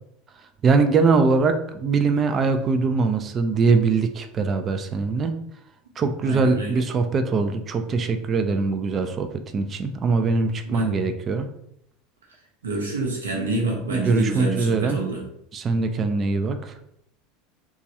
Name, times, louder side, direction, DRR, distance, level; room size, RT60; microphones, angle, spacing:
voice 1, 0.6-5.3 6.0-9.3 9.5-11.5 13.9-15.0 15.5-16.7, right 4 dB, 35° right, 7 dB, 0.4 m, -22 dB
voice 2, 6.2-6.8 10.6-10.9 12.6-15.2, right 2 dB, 80° right, -1 dB, 0.8 m, -27 dB
3.0 x 2.4 x 2.8 m, 0.74 s
figure-of-eight pair, 75°, 0 cm